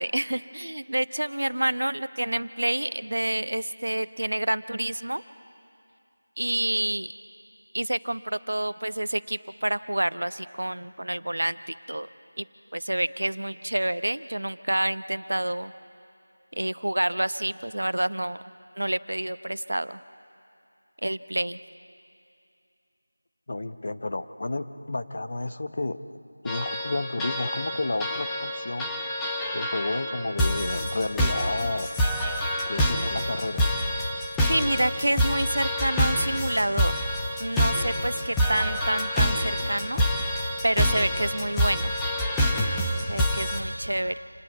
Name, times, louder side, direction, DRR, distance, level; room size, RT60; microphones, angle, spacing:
voice 1, 0.0-5.2 6.4-7.1 7.7-12.1 12.4-12.5 12.7-15.7 16.5-18.4 18.8-20.0 21.0-21.6 34.5-36.9 37.4-40.0 40.6-41.9 43.1-44.2, right 1 dB, 85° right, 14 dB, 0.8 m, -28 dB
voice 2, 23.5-26.0 26.4-28.9 29.5-31.9 32.7-33.7, left 2 dB, 35° left, 10 dB, 0.8 m, -31 dB
sound 1, 26.5-43.6, equal, 5° left, 0.7 m, -27 dB
27.0 x 19.5 x 9.1 m, 2.6 s
figure-of-eight pair, 175°, 0 cm